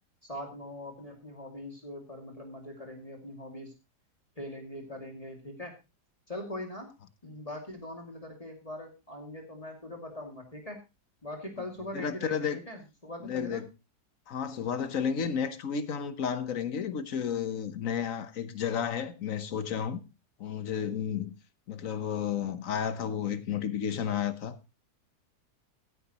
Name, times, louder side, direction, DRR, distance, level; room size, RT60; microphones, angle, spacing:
voice 1, 0.2-3.7 4.4-5.7 6.3-6.9 7.2-10.8 11.2-13.6, left 1 dB, 20° left, 2.5 m, -41 dB
voice 2, 11.9-12.6 13.2-13.7 14.3-20.0 20.4-21.3 21.7-24.6, left 7 dB, 60° left, 1.3 m, -32 dB
16.0 x 9.5 x 3.0 m
omnidirectional pair, 1.7 m